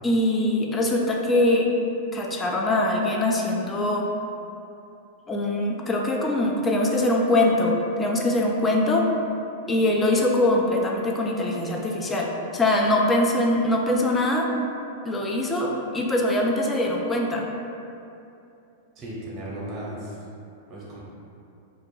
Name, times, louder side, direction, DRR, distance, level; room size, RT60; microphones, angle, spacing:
voice 1, 0.0-1.8 2.1-4.2 5.3-9.1 9.7-14.5 15.0-17.5, left 1 dB, 20° left, 0 dB, 0.3 m, -23 dB
voice 2, 19.0-20.2 20.7-21.0, right 1 dB, 30° right, -6 dB, 0.8 m, -35 dB
2.4 x 2.2 x 3.1 m, 2.7 s
hypercardioid pair, 115°, 0 cm